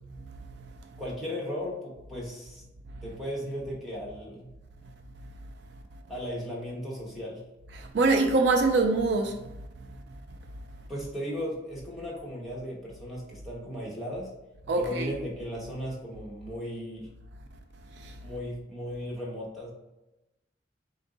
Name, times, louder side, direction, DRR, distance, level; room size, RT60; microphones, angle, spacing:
voice 1, 1.0-2.6 3.0-4.5 6.1-7.4 10.9-14.3 14.7-17.1 18.2-19.7, equal, ahead, 1.0 m, -36 dB
voice 2, 7.8-9.4 14.7-15.2 18.0-18.1, right 3 dB, 65° right, 0.4 m, -24 dB
3.9 x 2.6 x 3.7 m
head